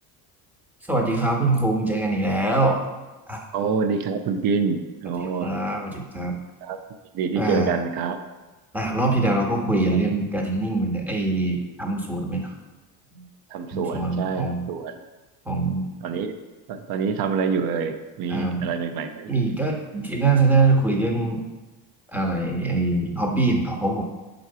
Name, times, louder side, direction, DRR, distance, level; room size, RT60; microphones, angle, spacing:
voice 1, 0.9-2.8 3.3-3.4 5.2-6.4 7.3-7.7 8.7-12.5 13.1-13.2 13.7-14.7 15.4-15.9 18.3-18.7 19.3-21.4 22.1-24.0, right 2 dB, 5° right, 0 dB, 1.1 m, -23 dB
voice 2, 3.5-5.5 6.6-6.8 7.1-8.2 9.2-9.4 9.9-10.0 13.5-15.0 16.0-16.3 16.7-19.3, right 5 dB, 55° right, 8 dB, 0.7 m, -26 dB
4.7 x 4.0 x 5.6 m, 1.2 s
supercardioid pair, 90°, 45 cm